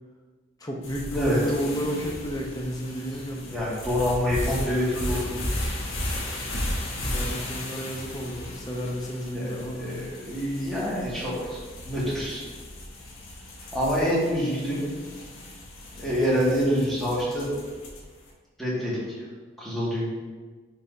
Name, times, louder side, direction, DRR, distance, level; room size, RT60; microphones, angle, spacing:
voice 1, 0.6-3.6 7.0-10.0, equal, 20° left, -1 dB, 0.7 m, -32 dB
sound 1, 0.8-18.2, left 1 dB, 80° left, 1.0 m, -35 dB
voice 2, 3.5-5.4 9.3-9.5 9.8-12.4 13.7-14.8 15.9-17.5 18.6-19.0 19.6-20.1, equal, ahead, -8 dB, 1.7 m, -26 dB
9.7 x 4.0 x 2.6 m, 1.4 s
head